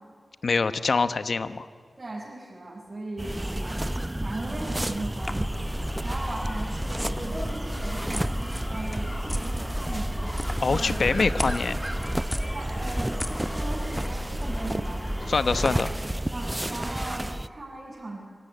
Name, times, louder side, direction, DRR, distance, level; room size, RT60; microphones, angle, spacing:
voice 1, 0.4-1.7 10.6-11.8 15.3-15.9, left 4 dB, 75° left, 12 dB, 0.9 m, -24 dB
voice 2, 2.0-3.8 4.1-8.3 8.7-10.3 10.7-11.2 12.3-15.3 15.7-15.8 16.3-18.2, right 2 dB, 45° right, -5 dB, 4.8 m, -38 dB
sound 1, 3.2-17.5, right 1 dB, 15° right, 0.6 m, -31 dB
sound 2, 5.2-15.8, equal, 15° left, 2.3 m, -33 dB
25.5 x 17.0 x 9.8 m, 2.2 s
cardioid pair, 55°, 0 cm